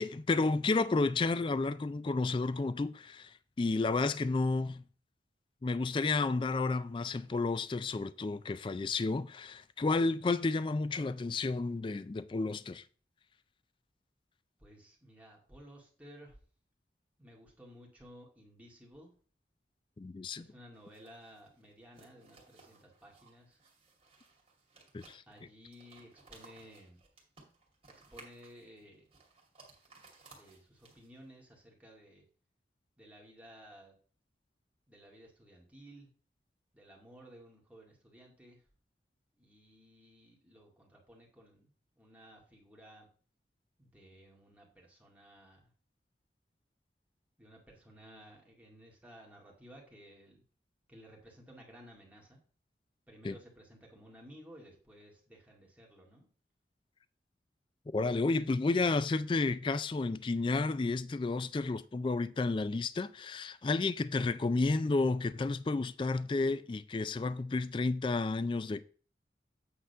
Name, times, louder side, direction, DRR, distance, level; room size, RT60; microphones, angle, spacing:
voice 1, 0.0-4.8 5.6-12.8 20.0-20.5 24.9-25.2 53.2-53.3 57.9-68.8, left 3 dB, 30° left, 0.3 m, -31 dB
voice 2, 14.6-16.4 17.2-19.1 20.4-23.6 25.3-27.0 28.1-29.1 30.4-32.3 33.0-34.0 34.9-36.1 36.7-38.6 39.4-43.1 43.8-45.7 47.4-50.4 50.9-52.4 53.1-56.3, equal, 10° right, 2.0 m, -56 dB
sound 1, 20.7-31.3, right 3 dB, 30° right, 2.3 m, -60 dB
8.6 x 3.9 x 5.4 m
head